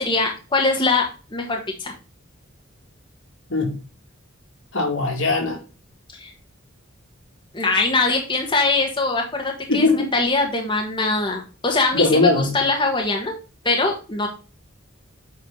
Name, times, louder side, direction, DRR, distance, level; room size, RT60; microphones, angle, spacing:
voice 1, 0.0-1.9 6.1-6.3 7.5-13.3 13.6-14.3, left 3 dB, 25° left, 1.4 m, -22 dB
voice 2, 4.7-5.6 9.7-10.1 11.9-12.6, left 3 dB, 70° left, 2.4 m, -20 dB
8.1 x 4.5 x 3.8 m
head